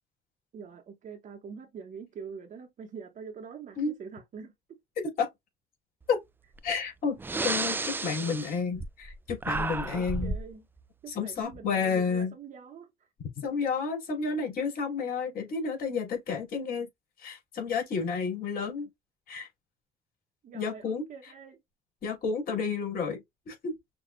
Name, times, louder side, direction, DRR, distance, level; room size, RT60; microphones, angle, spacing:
voice 1, 0.5-4.8 9.5-10.7 11.0-12.9 20.4-21.6, right 6 dB, 50° right, 1.0 m, -44 dB
voice 2, 6.6-10.3 11.1-12.3 13.4-16.9 17.2-18.9 19.3-19.5 20.5-21.3 22.0-23.7, left 5 dB, 60° left, 2.8 m, -31 dB
Breathing, 6.6-6.7 7.2-9.2 9.4-10.5, right 3 dB, 10° right, 0.3 m, -32 dB
6.1 x 2.4 x 2.4 m
cardioid pair, 110°, 17 cm